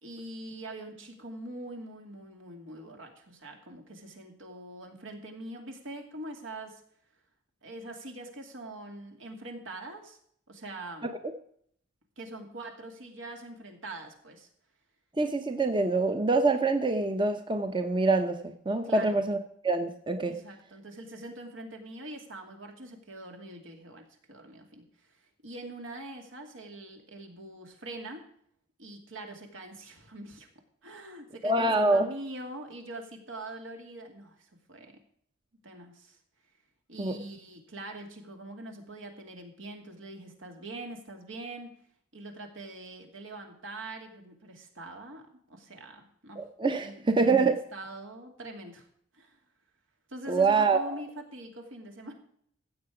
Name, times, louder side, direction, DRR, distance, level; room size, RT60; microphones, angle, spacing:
voice 1, 0.0-6.8 7.6-10.2 10.5-11.1 12.2-14.5 18.8-19.2 20.3-28.3 28.8-30.5 30.8-35.0 35.6-36.2 36.9-41.7 42.1-46.4 46.8-48.9 49.1-49.4 50.1-52.1, right 2 dB, 75° right, 3 dB, 2.6 m, -43 dB
voice 2, 15.2-19.4 19.6-20.3 31.4-32.1 37.0-37.2 46.4-47.6 50.3-51.0, right 3 dB, 25° right, 7 dB, 0.8 m, -25 dB
15.5 x 7.8 x 4.9 m, 0.65 s
head